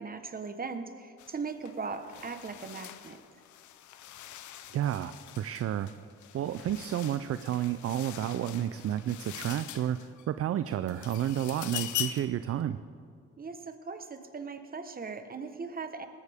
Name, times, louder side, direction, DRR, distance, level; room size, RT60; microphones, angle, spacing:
voice 1, 0.0-3.2 13.4-16.1, right 4 dB, 30° right, 8 dB, 1.2 m, -39 dB
sound 1, 1.2-1.4 1.7-10.3 10.7-12.4, left 12 dB, 75° left, 0.7 m, -42 dB
voice 2, 4.7-5.9 6.3-12.8, right 11 dB, 50° right, 12 dB, 0.5 m, -31 dB
19.0 x 13.0 x 3.6 m, 2.2 s
cardioid pair, 90°, 30 cm